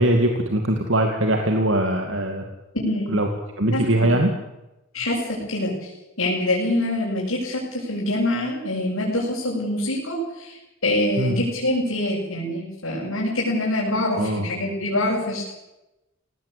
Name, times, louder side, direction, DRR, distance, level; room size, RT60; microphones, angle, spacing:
voice 1, 0.0-2.5 3.1-3.3 3.6-4.3 11.2-11.4 14.1-14.5, right 1 dB, 65° right, 4 dB, 2.4 m, -21 dB
voice 2, 2.7-3.1 3.7-4.1 4.9-5.9 6.2-10.6 10.8-15.5, left 1 dB, 85° left, -6 dB, 7.4 m, -25 dB
19.0 x 18.0 x 8.6 m, 0.96 s
head